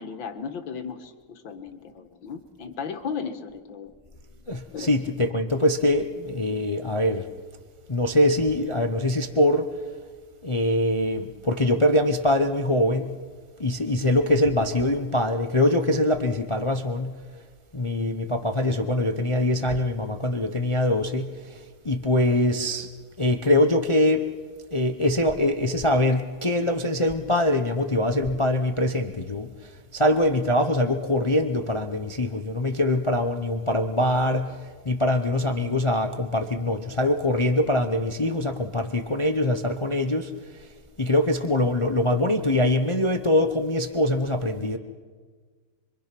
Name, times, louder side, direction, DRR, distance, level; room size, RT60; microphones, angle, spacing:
voice 1, 0.0-3.9 4.7-4.9, left 6 dB, 80° left, 7 dB, 2.2 m, -35 dB
voice 2, 4.5-7.3 7.9-9.7 10.4-13.1 13.6-17.1 17.7-21.6 21.8-22.9 23.2-24.2 24.7-29.5 29.9-34.5 34.8-40.3 41.0-44.8, left 1 dB, 30° left, 7 dB, 0.6 m, -23 dB
26.0 x 24.5 x 6.0 m, 1.5 s
omnidirectional pair, 2.1 m